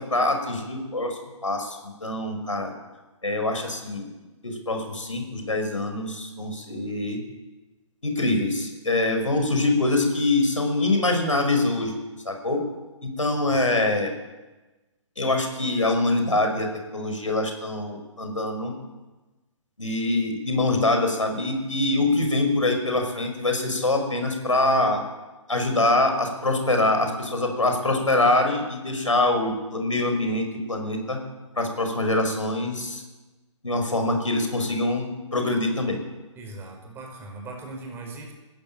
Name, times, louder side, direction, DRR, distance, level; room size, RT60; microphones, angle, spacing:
voice 1, 0.1-2.7 3.2-4.1 4.4-7.2 8.0-11.9 12.3-12.6 13.0-14.1 15.2-16.7 16.9-18.7 19.8-25.0 25.5-31.2 31.6-33.0 33.6-36.0, left 2 dB, 80° left, 4 dB, 5.8 m, -24 dB
voice 2, 13.5-13.9 36.4-38.3, right 2 dB, 15° right, 1 dB, 5.3 m, -40 dB
20.5 x 15.0 x 8.9 m, 1.2 s
figure-of-eight pair, 130°, 16 cm